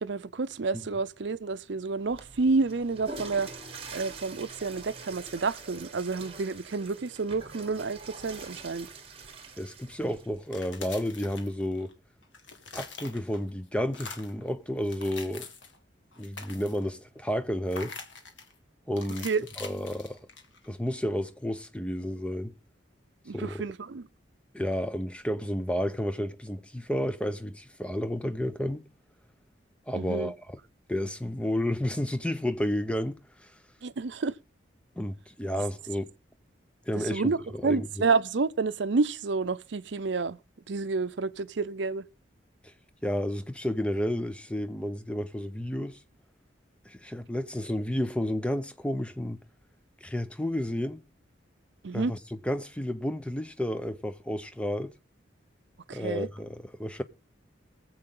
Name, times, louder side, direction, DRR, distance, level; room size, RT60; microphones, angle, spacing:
voice 1, 0.0-3.5 3.9-8.9 19.2-19.4 23.3-24.0 29.9-30.3 33.8-34.3 37.0-37.4 37.6-40.4 40.7-42.1 51.8-52.1 55.9-56.3, right 4 dB, 70° right, 0.6 m, -29 dB
Water / Toilet flush, 2.0-10.4, right 3 dB, 30° right, 1.5 m, -44 dB
voice 2, 9.6-11.9 12.7-15.5 16.2-17.9 18.9-19.3 19.6-20.2 20.7-22.5 23.3-23.6 24.5-28.8 29.9-30.6 30.9-33.5 35.0-36.1 36.9-37.9 42.6-42.7 43.0-46.0 46.8-49.4 50.0-51.0 51.9-54.9 55.9-57.0, equal, 5° left, 0.6 m, -31 dB
sound 1, 10.4-11.9 12.2-13.5 13.9-14.4 14.8-15.8 16.1-16.9 17.7-18.5 19.0-20.7, left 5 dB, 80° left, 1.9 m, -44 dB
23.0 x 7.7 x 3.8 m
head